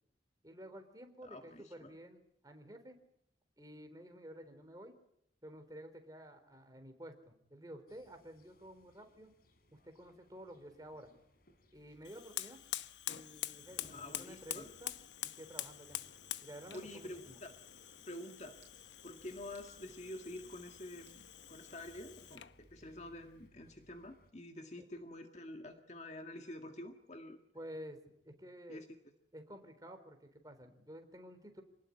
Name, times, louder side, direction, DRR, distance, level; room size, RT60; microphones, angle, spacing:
voice 1, 0.4-3.0 3.6-4.9 5.4-9.3 9.7-11.1 11.7-12.6 13.1-14.9 15.2-16.0 16.4-17.4 27.5-28.8 29.3-31.6, equal, 20° right, 6 dB, 3.9 m, -52 dB
voice 2, 1.2-1.9 13.8-14.7 16.7-17.5 18.1-18.6 19.0-27.4 28.7-28.9, left 1 dB, 40° left, 5 dB, 1.9 m, -48 dB
sound 1, 7.9-24.3, left 1 dB, 55° left, 3.7 m, -67 dB
Fire, 12.0-22.6, left 12 dB, 75° left, 1.0 m, -46 dB
sound 2, 15.6-15.8 16.7-17.0 17.4-17.5 17.8-18.0 18.5-18.8 19.5-19.7 20.2-20.5 21.1-21.3 22.3-22.7, right 7 dB, 40° right, 7.6 m, -68 dB
28.0 x 19.0 x 9.6 m, 0.76 s
head